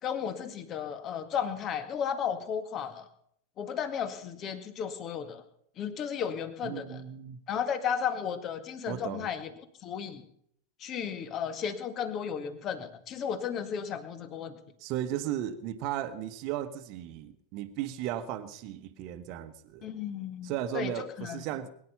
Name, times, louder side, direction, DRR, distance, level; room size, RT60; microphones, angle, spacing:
voice 1, 0.0-3.1 3.6-5.4 5.8-7.0 7.5-9.5 9.8-10.2 10.8-14.6 19.8-21.4, left 8 dB, 30° left, 2.1 m, -34 dB
voice 2, 6.6-7.4 8.9-9.3 14.8-19.9 20.4-21.7, right 11 dB, 40° right, 1.3 m, -35 dB
22.0 x 11.0 x 5.7 m
figure-of-eight pair, 90°, 0 cm